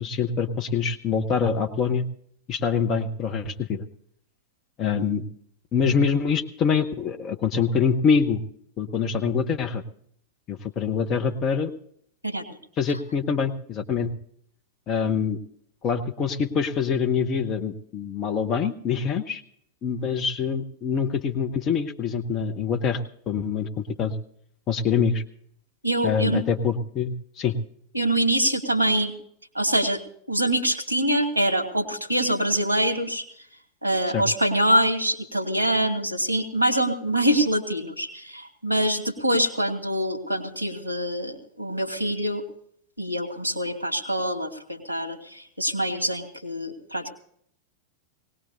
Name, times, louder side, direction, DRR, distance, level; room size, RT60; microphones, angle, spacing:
voice 1, 0.0-2.1 2.5-3.8 4.8-5.2 5.7-8.4 8.8-9.8 10.5-11.7 12.8-14.1 14.9-15.4 15.8-19.4 19.8-24.1 24.7-25.2 26.0-27.5 34.1-34.2, left 6 dB, 35° left, 8 dB, 1.0 m, -25 dB
voice 2, 25.8-26.4 27.9-29.1 29.5-30.0 30.3-33.2 33.8-42.4 43.0-47.1, right 1 dB, 90° left, 4 dB, 2.2 m, -24 dB
19.5 x 19.0 x 2.7 m, 0.66 s
figure-of-eight pair, 90°, 0 cm